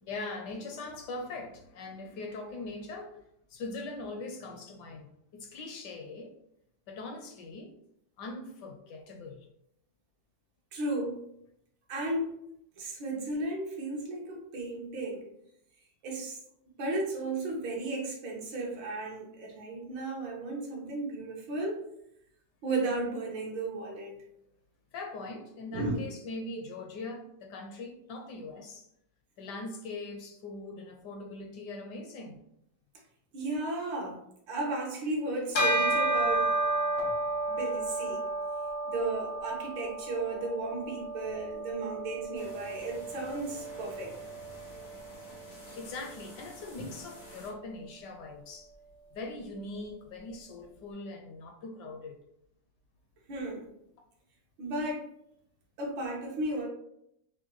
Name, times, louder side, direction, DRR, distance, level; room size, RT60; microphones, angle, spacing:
voice 1, 0.0-3.2 3.5-6.3 6.9-7.7 8.2-9.5 24.9-28.9 29.4-32.4 45.7-48.7 49.1-52.2, left 2 dB, 75° left, 1.1 m, -41 dB
voice 2, 10.7-11.2 11.9-12.3 12.8-15.3 16.0-16.4 16.8-21.9 22.6-24.2 25.7-26.0 33.3-34.2 34.5-36.5 37.0-37.1 37.5-38.2 38.9-44.1 46.8-46.9 53.3-53.7 54.6-55.1 55.8-56.7, right 2 dB, 80° right, 1.7 m, -34 dB
Bell, 35.5-45.2, right 2 dB, 55° left, 0.6 m, -32 dB
sound 1, 42.3-47.5, equal, 90° left, 2.4 m, -50 dB
6.1 x 2.2 x 3.0 m
omnidirectional pair, 2.1 m